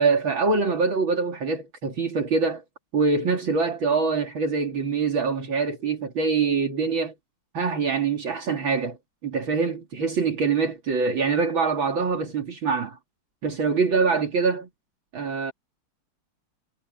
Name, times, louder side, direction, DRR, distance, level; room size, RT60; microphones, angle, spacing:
voice 1, 0.0-2.6 2.9-7.1 7.5-9.0 9.2-13.0 13.4-14.7 15.1-15.5, right 4 dB, 65° right, 3.3 m, -24 dB
omnidirectional pair, 2.3 m